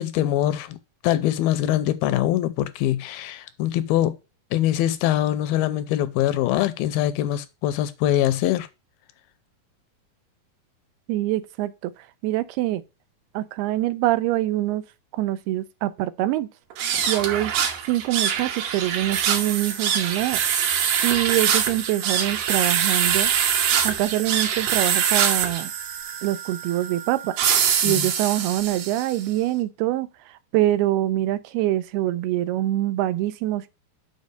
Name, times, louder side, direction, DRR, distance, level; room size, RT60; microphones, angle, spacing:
voice 1, 0.0-4.2 4.5-8.7 27.9-28.1, left 13 dB, 80° left, 2.3 m, -23 dB
voice 2, 11.1-11.9 12.2-12.8 13.3-14.8 15.1-16.5 17.1-17.5 17.9-20.4 21.0-23.3 23.8-25.7 26.2-27.4 27.8-30.1 30.5-33.7, right 15 dB, 90° right, 2.6 m, -24 dB
sound 1, 16.7-29.2, right 8 dB, 70° right, 2.8 m, -24 dB
6.5 x 5.1 x 6.7 m
omnidirectional pair, 4.5 m